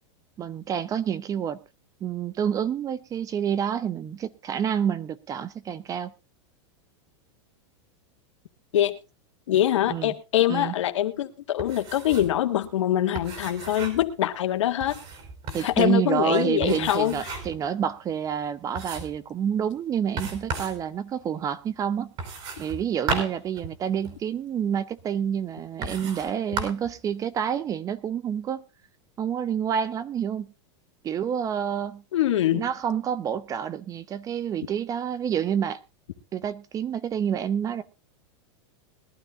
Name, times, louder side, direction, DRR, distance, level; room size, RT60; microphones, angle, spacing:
voice 1, 0.4-1.6 2.0-6.1 9.9-10.1 10.5-10.7 15.5-22.1 22.6-28.6 29.2-30.5 31.0-32.0 32.5-35.8 36.3-37.8, right 8 dB, 25° right, 0.8 m, -28 dB
voice 2, 9.5-14.9 15.6-17.4 32.1-32.7, left 12 dB, 85° left, 1.8 m, -24 dB
sound 1, 11.6-12.4 12.6-12.7 13.1-14.1 14.8-15.8 16.6-17.6 18.1-18.2 18.7-19.2 20.2-20.8 22.2-24.2 25.0-25.1 25.8-26.3 26.6-26.9, right 4 dB, 40° right, 5.1 m, -34 dB
21.0 x 12.5 x 2.5 m
supercardioid pair, 145°, 15 cm